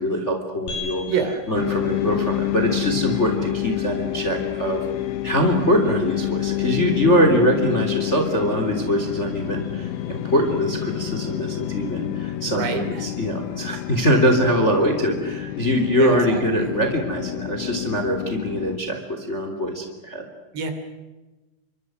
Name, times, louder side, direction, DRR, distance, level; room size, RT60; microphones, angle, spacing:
voice 1, 0.0-1.0 1.5-4.8 5.2-20.2, equal, 15° left, 5 dB, 2.8 m, -23 dB
sound 1, 0.7-15.3, left 3 dB, 45° left, 9.1 m, -45 dB
sound 2, 1.5-18.8, left 16 dB, 75° left, 2.4 m, -28 dB
voice 2, 12.5-13.1 16.0-16.7 20.5-20.7, right 6 dB, 65° right, 7 dB, 5.0 m, -27 dB
29.5 x 25.0 x 6.4 m, 1.1 s
omnidirectional pair, 5.4 m